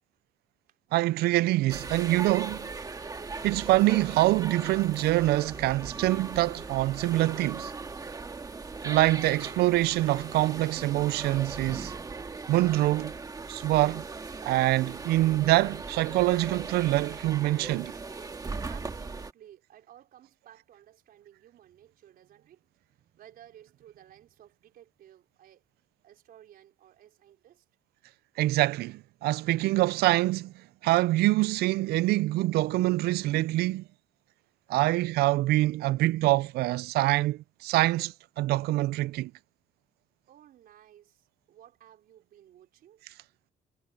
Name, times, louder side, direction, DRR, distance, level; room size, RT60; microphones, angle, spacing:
voice 1, 0.9-2.7 3.4-7.7 8.8-11.9 12.5-13.1 13.5-14.0 14.4-17.9 28.4-30.5 30.8-33.8 34.7-39.3, right 17 dB, 85° right, 0.4 m, -25 dB
sound 1, 1.7-19.3, right 4 dB, 20° right, 1.8 m, -39 dB
voice 2, 18.6-25.6 26.0-27.6 40.3-43.0, right 11 dB, 65° right, 4.8 m, -55 dB
cardioid pair, 125°, 16 cm